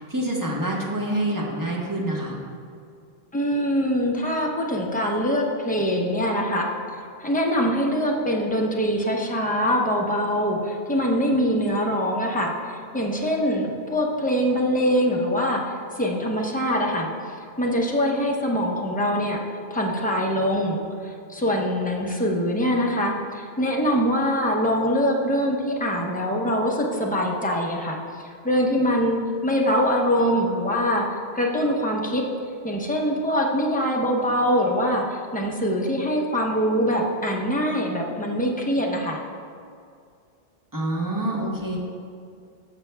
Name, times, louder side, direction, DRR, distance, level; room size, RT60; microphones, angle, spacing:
voice 1, 0.0-2.4 40.7-41.8, right 1 dB, 20° right, -4 dB, 1.2 m, -26 dB
voice 2, 3.3-17.1 17.6-19.4 19.7-31.0 31.3-32.3 32.6-39.2, equal, 10° left, -2 dB, 0.7 m, -23 dB
14.0 x 6.0 x 2.3 m, 2.3 s
omnidirectional pair, 1.0 m